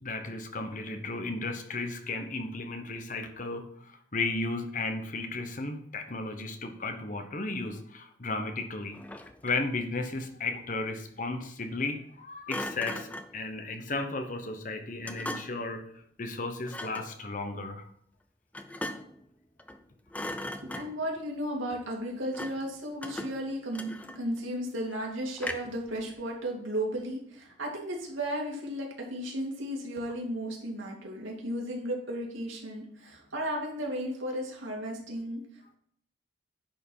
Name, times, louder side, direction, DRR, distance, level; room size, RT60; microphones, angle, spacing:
voice 1, 0.0-9.0 9.4-15.8 16.2-17.9, left 3 dB, 40° left, 6 dB, 1.0 m, -34 dB
Thump thud, 8.9-9.7 12.5-13.4 15.0-15.7 16.7-17.1 18.5-19.2 19.6-19.8 20.1-21.1 22.3-22.7 23.0-24.4 25.4-25.8, left 1 dB, 10° left, 0.4 m, -39 dB
voice 2, 20.6-35.4, equal, 85° right, -2 dB, 2.5 m, -34 dB
10.5 x 4.6 x 5.5 m, 0.66 s
head